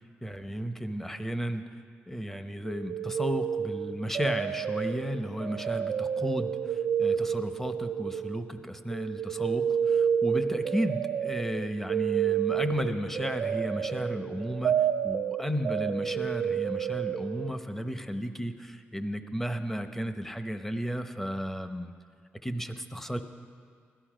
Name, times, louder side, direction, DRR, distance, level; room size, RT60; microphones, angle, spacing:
voice 1, 0.2-1.7 2.1-21.9 22.4-23.2, equal, 10° left, 8 dB, 0.9 m, -33 dB
sound 1, 2.7-8.6 8.9-17.5, right 8 dB, 65° right, 0.5 m, -30 dB
17.0 x 12.5 x 5.1 m, 2.1 s
cardioid pair, 80°, 4 cm